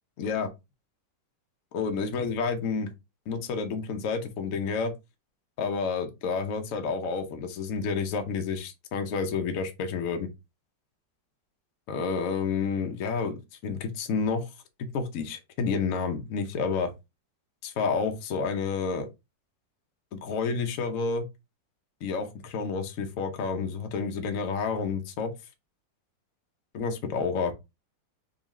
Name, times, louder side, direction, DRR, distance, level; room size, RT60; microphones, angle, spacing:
voice 1, 0.2-0.5 1.7-2.9 3.3-4.9 5.6-10.3 11.9-14.5 14.8-16.9 17.6-19.1 20.1-21.3 22.0-25.3 26.7-27.5, left 5 dB, 60° left, 1.0 m, -30 dB
3.8 x 3.0 x 3.0 m
omnidirectional pair, 2.0 m